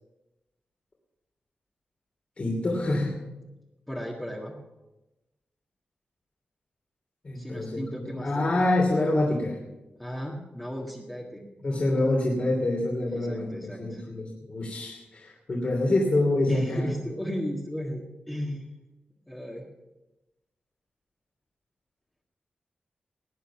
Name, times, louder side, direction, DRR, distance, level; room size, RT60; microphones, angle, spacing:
voice 1, 2.4-3.2 7.2-9.6 11.6-13.5 13.8-16.9, left 2 dB, 40° left, -2 dB, 2.8 m, -26 dB
voice 2, 3.9-4.6 7.3-8.5 10.0-11.4 13.1-14.1 16.5-18.6 19.3-19.7, equal, 10° left, -4 dB, 1.8 m, -35 dB
18.5 x 9.5 x 5.9 m, 1.0 s
wide cardioid pair, 135°, 3 cm